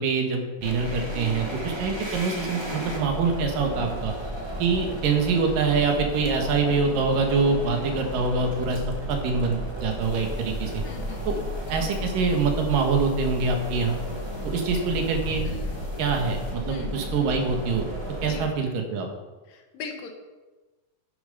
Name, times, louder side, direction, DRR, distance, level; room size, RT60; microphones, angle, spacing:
voice 1, 0.0-4.1 4.6-8.8 9.1-10.8 11.3-11.4 11.7-14.0 14.4-15.4 16.0-17.9 18.2-19.1, right 4 dB, 90° right, 3 dB, 3.2 m, -25 dB
sound 1, 0.6-18.5, equal, 35° right, 0.4 m, -34 dB
sound 2, 10.0-16.5, left 1 dB, 55° left, 4.0 m, -40 dB
voice 2, 10.8-11.4 15.4-15.9 16.7-16.9 18.3-18.5 19.5-20.1, left 6 dB, 85° left, 4 dB, 3.0 m, -40 dB
10.5 x 8.8 x 5.4 m, 1.2 s
omnidirectional pair, 3.8 m